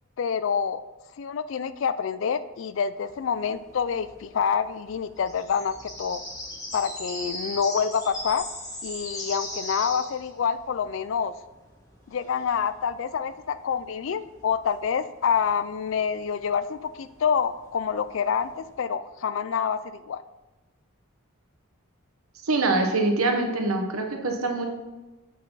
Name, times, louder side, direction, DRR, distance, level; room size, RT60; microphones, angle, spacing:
voice 1, 0.2-0.8 1.2-6.2 6.7-8.5 8.8-11.3 12.1-20.2, left 6 dB, 60° left, 14 dB, 0.4 m, -27 dB
sound 1, 3.1-18.7, left 1 dB, 15° left, 1.4 m, -40 dB
voice 2, 22.4-24.7, right 2 dB, 85° right, 4 dB, 1.1 m, -24 dB
7.5 x 5.8 x 4.0 m, 1.1 s
head